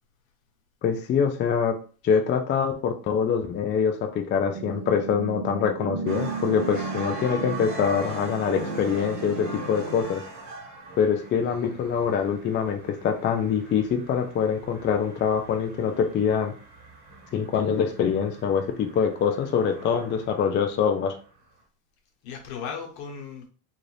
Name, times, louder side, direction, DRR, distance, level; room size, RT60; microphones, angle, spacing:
voice 1, 0.8-1.8 2.0-10.2 11.0-16.5 17.3-21.2, left 7 dB, 25° left, 5 dB, 0.3 m, -24 dB
sound 1, 4.5-10.0, right 4 dB, 60° right, 0.8 m, -34 dB
sound 2, 6.1-21.3, right 2 dB, 35° right, 1.1 m, -42 dB
voice 2, 11.5-12.1 22.2-23.5, left 6 dB, 65° left, 2 dB, 1.2 m, -38 dB
2.6 x 2.5 x 3.2 m, 0.39 s
hypercardioid pair, 90°, 48 cm